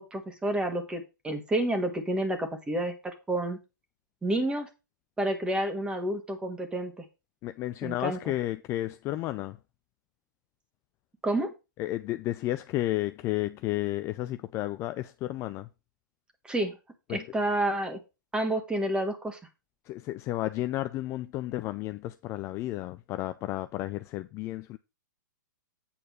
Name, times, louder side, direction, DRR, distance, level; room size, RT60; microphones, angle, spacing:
voice 1, 0.0-3.6 4.2-4.7 5.2-7.0 7.8-8.3 11.2-11.5 16.5-16.8 17.1-18.0 18.3-19.4, right 1 dB, 10° right, 1.8 m, -29 dB
voice 2, 7.4-9.6 11.8-15.7 17.1-17.2 19.9-24.8, left 16 dB, 25° left, 0.4 m, -32 dB
8.7 x 4.3 x 5.6 m
figure-of-eight pair, 115°, 11 cm